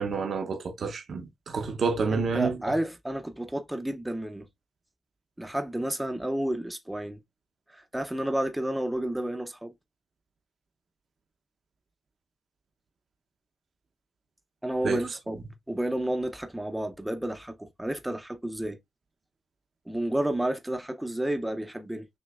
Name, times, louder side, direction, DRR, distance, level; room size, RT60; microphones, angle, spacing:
voice 1, 0.0-2.6 14.8-15.0, right 5 dB, 60° right, 0.6 m, -29 dB
voice 2, 2.1-4.5 5.4-7.2 7.7-9.7 14.6-18.8 19.9-22.1, right 1 dB, 5° right, 0.5 m, -31 dB
6.1 x 3.0 x 2.3 m
wide cardioid pair, 155°, 0 cm